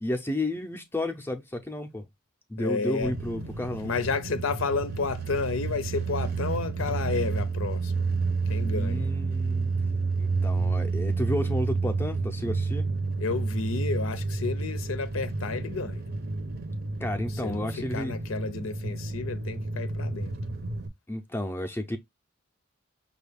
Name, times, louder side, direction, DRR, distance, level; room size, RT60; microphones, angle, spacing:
voice 1, 0.0-2.1 2.5-3.9 8.8-9.7 10.2-12.9 17.0-18.1 21.1-22.0, left 1 dB, 10° left, 0.5 m, -32 dB
voice 2, 2.6-3.1 3.8-8.1 8.5-9.0 13.2-16.0 17.3-20.3, left 4 dB, 85° left, 0.5 m, -31 dB
sound 1, 3.0-20.9, right 4 dB, 50° right, 0.7 m, -30 dB
5.4 x 2.3 x 3.3 m
head